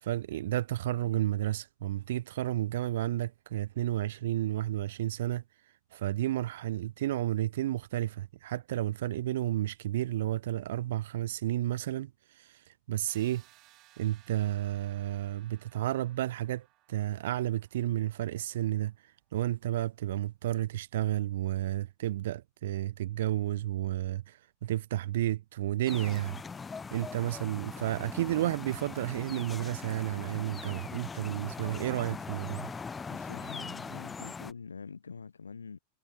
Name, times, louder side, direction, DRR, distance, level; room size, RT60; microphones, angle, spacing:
voice 1, 0.0-5.4 5.9-13.4 14.0-26.4 26.9-32.7, right 14 dB, 55° right, 0.3 m, -32 dB
sound 1, 13.1-18.9, right 18 dB, 40° right, 2.6 m, -63 dB
sound 2, 25.9-34.5, left 5 dB, 15° left, 0.5 m, -41 dB
voice 2, 32.5-35.8, left 5 dB, 75° left, 0.5 m, -46 dB
figure-of-eight pair, 90°, 0 cm